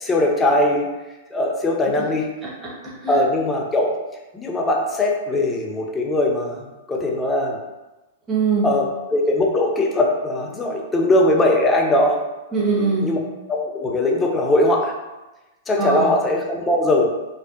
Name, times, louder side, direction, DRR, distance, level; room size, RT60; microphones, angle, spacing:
voice 1, 0.0-0.8 1.3-2.3 3.1-3.9 4.3-7.6 8.6-12.2 13.0-13.2 13.5-14.9 15.7-17.1, left 1 dB, 15° left, 0 dB, 0.5 m, -20 dB
voice 2, 2.4-3.2 8.3-8.7 12.5-13.2 15.8-16.1, right 4 dB, 20° right, -5 dB, 0.8 m, -23 dB
2.5 x 2.1 x 2.4 m, 1.1 s
hypercardioid pair, 115°, 0 cm